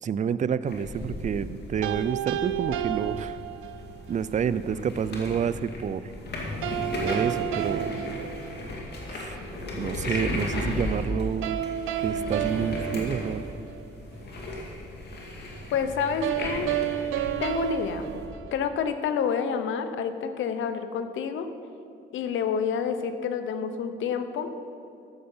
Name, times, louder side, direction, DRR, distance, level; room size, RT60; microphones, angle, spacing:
voice 1, 0.0-3.4 4.1-6.1 7.0-7.9 9.1-9.4 9.8-11.6 12.0-13.4, right 7 dB, 40° right, 15 dB, 0.4 m, -29 dB
sound 1, 0.7-18.3, left 1 dB, 55° left, 2.2 m, -35 dB
sound 2, 1.8-4.0 6.6-9.0 11.4-13.9 16.2-19.0, right 11 dB, 90° right, 0.5 m, -31 dB
voice 2, 15.7-16.7 17.4-18.2 18.5-21.5 22.1-24.5, left 6 dB, 75° left, 9 dB, 0.8 m, -28 dB
13.0 x 7.8 x 5.5 m, 2.6 s
cardioid pair, 90°, 20 cm